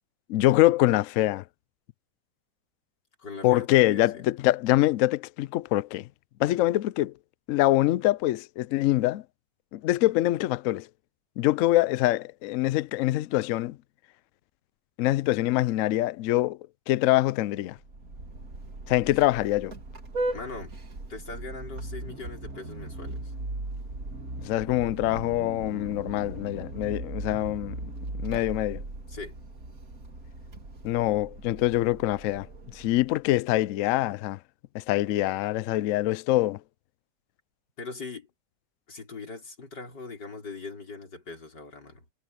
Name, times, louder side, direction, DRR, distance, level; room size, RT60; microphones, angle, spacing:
voice 1, 0.3-1.4 3.4-6.1 6.4-7.1 7.5-9.2 9.7-10.9 11.4-13.8 15.0-16.6 16.9-17.8 18.9-19.7 24.4-27.8 28.2-28.8 30.8-32.5 32.7-34.4 34.7-36.6, left 16 dB, 85° left, 0.7 m, -24 dB
voice 2, 3.2-4.2 20.3-20.7 21.1-23.2 29.1-29.4 37.8-38.3 38.9-42.1, left 3 dB, 70° left, 5.1 m, -40 dB
Vehicle horn car horn honking, 17.8-33.2, right 2 dB, 50° right, 3.1 m, -38 dB
omnidirectional pair, 1.9 m